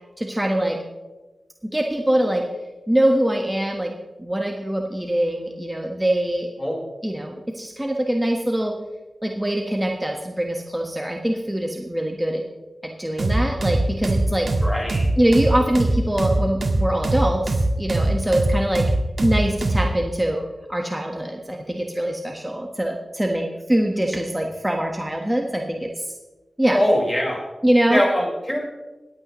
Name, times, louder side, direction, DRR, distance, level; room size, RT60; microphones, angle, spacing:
voice 1, 0.2-0.8 1.6-2.4 2.9-3.9 4.2-6.5 7.0-8.8 9.2-12.4 12.8-14.5 15.2-18.8 19.2-20.4 20.7-26.1 26.6-26.8 27.6-28.0, right 1 dB, 10° right, 1 dB, 1.4 m, -23 dB
sound 1, 13.2-19.9, right 2 dB, 60° right, 1.6 m, -21 dB
voice 2, 14.6-15.1 26.7-27.5 27.9-28.6, equal, 15° left, -2 dB, 4.8 m, -22 dB
22.0 x 8.7 x 3.1 m, 1.2 s
cardioid pair, 55°, 0 cm